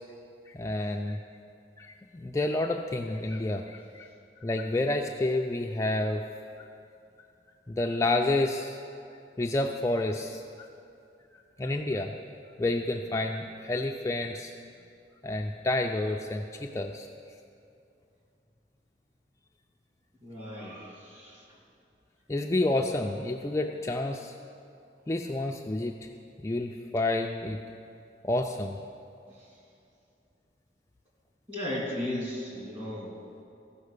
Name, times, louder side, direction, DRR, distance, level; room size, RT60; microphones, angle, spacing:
voice 1, 0.5-1.2 1.8-4.1 4.4-6.2 7.7-8.8 9.4-10.7 11.6-12.1 12.6-14.5 15.2-17.1 22.3-24.3 25.1-26.0 26.4-27.6 28.2-28.8, left 2 dB, 15° left, 2 dB, 0.3 m, -29 dB
voice 2, 20.2-21.4 31.5-33.1, left 1 dB, 30° right, -4 dB, 2.9 m, -35 dB
15.0 x 5.6 x 6.6 m, 2.5 s
head